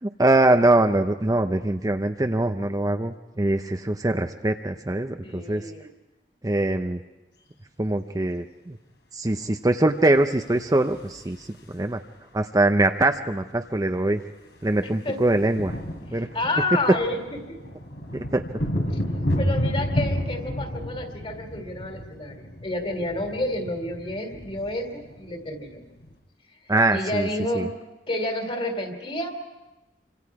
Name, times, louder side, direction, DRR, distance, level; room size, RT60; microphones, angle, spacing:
voice 1, 0.0-5.7 6.4-7.0 7.8-8.8 9.1-12.0 12.3-14.2 14.6-15.8 16.1-16.3 18.1-18.4 18.7-18.8 26.7-27.3 27.5-27.7, right 2 dB, 20° right, 6 dB, 0.6 m, -23 dB
voice 2, 5.2-5.9 14.8-15.2 16.3-17.7 19.4-25.8 26.5-26.6 26.9-27.7 28.1-29.3, left 1 dB, 30° left, 5 dB, 2.9 m, -30 dB
sound 1, 10.4-11.9 13.2-13.3 13.5-13.7 14.0-26.1, equal, 75° left, 3.5 m, -31 dB
27.0 x 25.5 x 4.8 m, 1.0 s
head